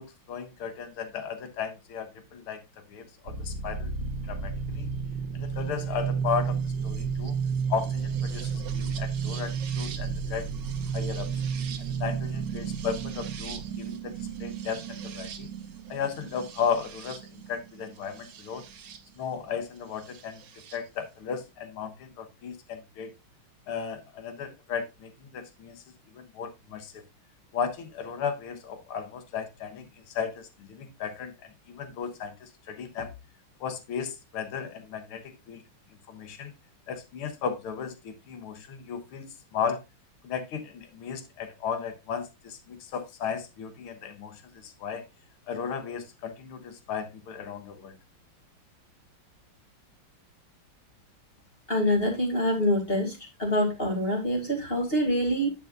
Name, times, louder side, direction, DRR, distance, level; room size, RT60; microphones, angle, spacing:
voice 1, 0.0-2.6 2.9-3.9 4.3-4.9 5.3-7.4 7.7-10.5 10.9-11.3 11.8-15.5 15.9-18.6 19.2-20.4 20.7-23.1 23.7-25.8 26.1-27.0 27.5-33.1 33.6-35.6 36.1-36.5 36.9-39.8 40.2-45.0 45.5-47.9, left 6 dB, 85° left, 2.1 m, -35 dB
sound 1, 3.3-19.0 20.2-20.8, right 6 dB, 60° right, 1.5 m, -32 dB
voice 2, 51.7-55.5, equal, 25° left, 2.6 m, -26 dB
9.9 x 7.2 x 2.5 m
omnidirectional pair, 2.4 m